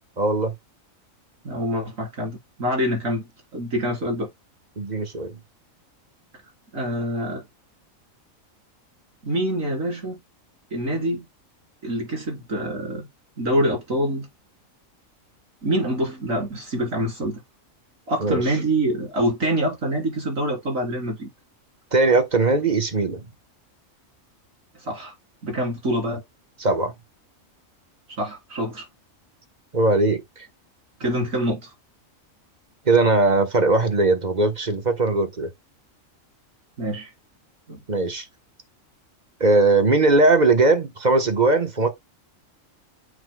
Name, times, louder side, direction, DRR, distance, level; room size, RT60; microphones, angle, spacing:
voice 1, 0.2-0.5 4.8-5.4 18.2-18.4 21.9-23.2 26.6-26.9 29.7-30.5 32.8-35.5 37.9-38.2 39.4-41.9, right 3 dB, 35° right, 1.3 m, -19 dB
voice 2, 1.4-4.3 6.7-7.4 9.2-10.2 10.7-11.3 11.8-13.1 13.4-14.3 15.6-17.4 18.1-21.3 24.8-25.1 25.4-26.2 28.2-28.8 31.0-31.7 36.8-37.1 37.7-37.8, equal, 80° right, 4.3 m, -25 dB
8.3 x 5.9 x 2.3 m
omnidirectional pair, 1.4 m